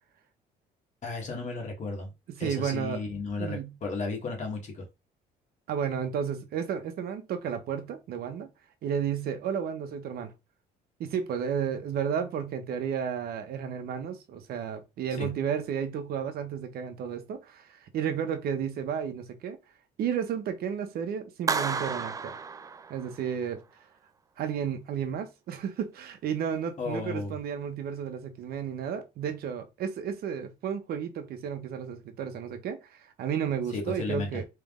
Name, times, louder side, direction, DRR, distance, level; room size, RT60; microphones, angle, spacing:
voice 1, 1.0-2.1 2.4-4.9 15.1-15.3 26.8-27.4 33.7-34.4, left 3 dB, 45° left, 1.5 m, -34 dB
voice 2, 2.4-3.0 3.4-3.7 5.7-8.5 8.8-10.3 11.0-19.6 20.0-22.3 22.9-23.6 24.4-34.4, right 8 dB, 65° right, 0.9 m, -32 dB
Clapping, 21.5-23.3, right 5 dB, 20° right, 0.4 m, -32 dB
3.4 x 3.3 x 3.6 m
cardioid pair, 110°, 17 cm